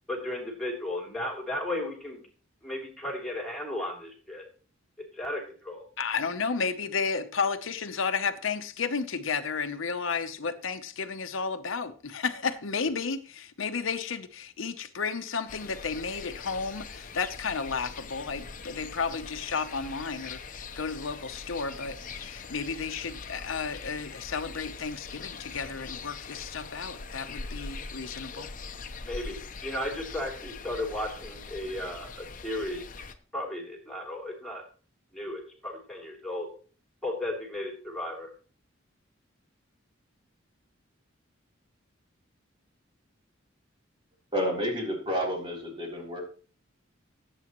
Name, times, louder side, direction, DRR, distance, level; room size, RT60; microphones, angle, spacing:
voice 1, 0.1-2.2 2.6-4.4 5.1-5.8 28.3-28.4 29.0-29.4 29.6-32.8 33.3-34.6 35.1-36.5 37.0-38.3, left 1 dB, ahead, 3.3 m, -35 dB
voice 2, 6.0-28.5, left 5 dB, 75° left, 0.8 m, -32 dB
sound 1, 15.5-33.1, left 4 dB, 40° left, 0.8 m, -42 dB
voice 3, 44.3-46.2, equal, 25° right, 3.6 m, -30 dB
17.0 x 8.3 x 3.1 m
head